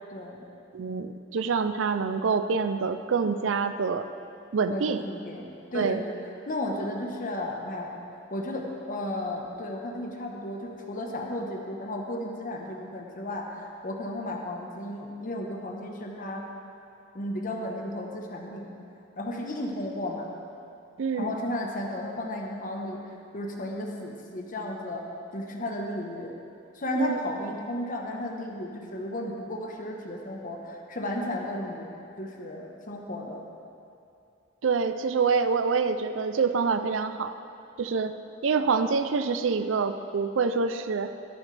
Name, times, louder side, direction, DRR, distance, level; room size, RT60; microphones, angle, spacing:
voice 1, 0.1-0.4 4.6-6.1 6.5-16.5 17.1-18.7 19.2-20.3 21.1-25.1 25.3-26.3 26.7-33.4, left 1 dB, 45° left, 1 dB, 1.1 m, -34 dB
voice 2, 0.7-4.1 4.5-5.0 5.7-6.0 21.0-21.3 27.0-27.2 34.6-37.3 37.8-38.1 38.4-41.1, right 5 dB, 75° right, 10 dB, 0.5 m, -26 dB
13.0 x 10.5 x 3.3 m, 2.7 s
head